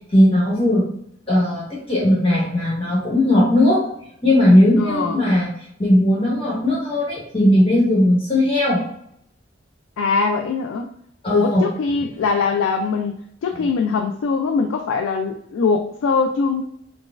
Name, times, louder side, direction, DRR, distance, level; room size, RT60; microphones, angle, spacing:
voice 1, 0.1-0.9 1.3-3.8 4.2-5.5 5.8-8.8 11.2-11.7 13.6-13.7, left 1 dB, 30° left, -6 dB, 1.1 m, -17 dB
voice 2, 4.8-5.2 10.0-10.9 11.3-16.6, left 5 dB, 80° left, 4 dB, 0.3 m, -22 dB
4.0 x 2.3 x 2.3 m, 0.72 s
head